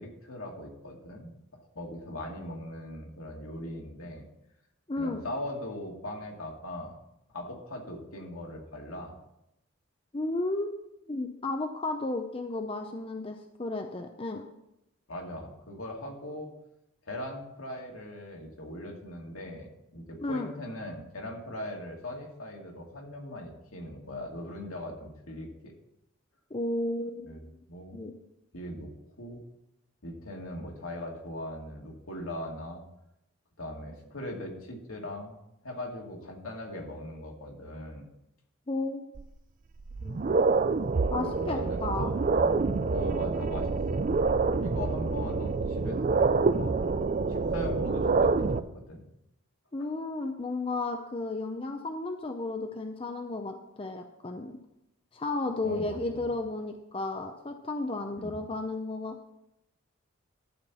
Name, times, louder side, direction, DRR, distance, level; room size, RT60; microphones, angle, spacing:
voice 1, 0.0-1.3 1.8-4.2 5.0-7.0 7.3-9.1 15.1-16.5 17.0-25.7 27.3-28.0 28.5-28.9 29.2-29.4 30.0-32.8 33.6-35.4 35.6-38.1 41.1-44.1 44.6-46.8 47.3-49.0 55.6-56.3 58.2-58.4, left 1 dB, 80° left, 0 dB, 2.3 m, -40 dB
voice 2, 4.9-5.2 10.1-10.7 11.1-14.4 20.2-20.5 26.5-27.4 27.9-28.1 38.7-39.0 40.0-40.2 41.1-42.1 49.7-54.6 55.1-59.2, left 2 dB, 25° left, 5 dB, 0.5 m, -33 dB
sound 1, 39.2-39.3 39.8-48.6, right 4 dB, 40° right, 0.4 m, -27 dB
12.0 x 4.4 x 6.9 m, 0.85 s
head